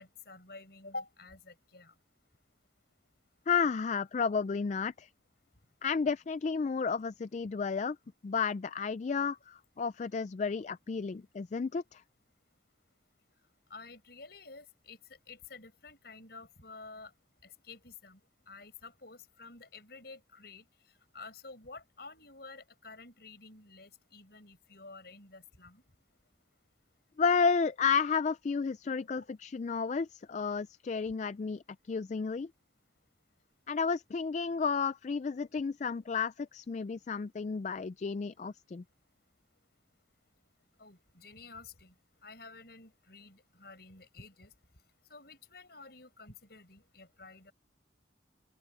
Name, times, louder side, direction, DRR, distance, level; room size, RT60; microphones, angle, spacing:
voice 1, 0.0-1.9 13.7-17.1 17.4-18.2 18.5-20.6 21.1-25.8 29.2-29.3 40.8-41.9 42.2-44.5 45.1-47.5, left 3 dB, 55° left, 7.5 m, -50 dB
voice 2, 3.5-5.1 5.8-8.0 8.2-12.0 27.2-32.5 33.7-38.8, left 5 dB, 40° left, 0.3 m, -32 dB
open air
head